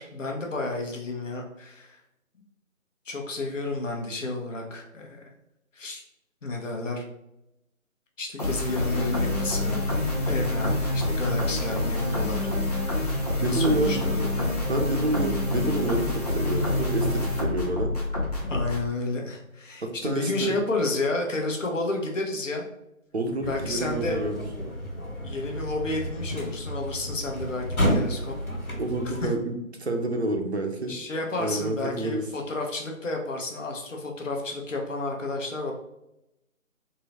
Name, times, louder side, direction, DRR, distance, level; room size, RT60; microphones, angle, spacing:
voice 1, 0.0-2.0 3.1-5.2 5.7-6.0 6.4-7.0 8.2-9.9 10.3-12.4 12.7-14.3 18.4-22.7 23.4-24.2 25.2-28.3 29.2-29.3 30.9-35.7, left 2 dB, 60° left, 1 dB, 0.8 m, -31 dB
sound 1, 8.4-18.9, left 2 dB, 30° left, 0.7 m, -27 dB
voice 2, 13.4-14.0 14.7-17.9 19.8-20.6 23.1-24.4 28.8-30.9 31.4-32.2, right 2 dB, 50° right, 3 dB, 0.5 m, -28 dB
sound 2, 23.4-29.3, equal, 90° left, 1.5 m, -31 dB
3.7 x 2.1 x 2.8 m, 0.88 s
figure-of-eight pair, 160°, 42 cm